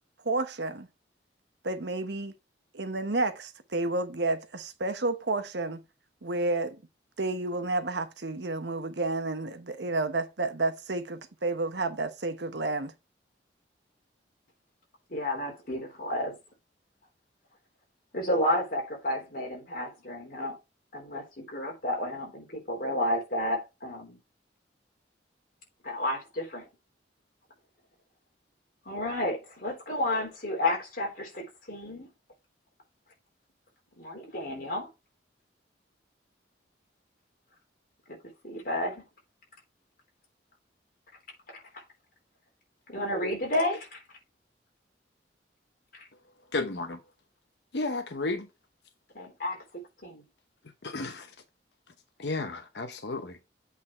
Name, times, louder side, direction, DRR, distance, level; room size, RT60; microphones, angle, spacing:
voice 1, 0.2-0.9 1.6-2.3 2.7-5.8 6.2-6.8 7.2-12.9, right 2 dB, 70° right, 1.0 m, -30 dB
voice 2, 15.1-16.4 18.1-20.6 20.9-24.2 25.8-26.7 28.8-32.1 34.0-34.9 38.1-38.2 38.4-39.0 41.5-41.8 42.9-44.0 45.9-46.0 49.1-49.6 50.0-50.2, left 1 dB, 50° left, 3.4 m, -31 dB
voice 3, 46.5-47.0 47.7-48.5 50.8-51.3 52.2-53.4, left 3 dB, 70° left, 0.9 m, -32 dB
8.3 x 4.1 x 4.3 m
head